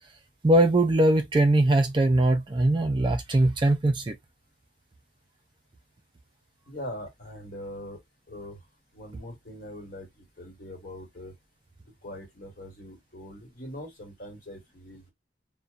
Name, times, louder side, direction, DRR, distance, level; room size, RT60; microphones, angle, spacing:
voice 1, 0.4-4.1, right 1 dB, 25° right, 0.4 m, -21 dB
voice 2, 6.7-8.0 8.3-8.6 8.9-11.3 12.0-15.1, left 1 dB, 50° left, 1.4 m, -42 dB
2.7 x 2.2 x 2.4 m
head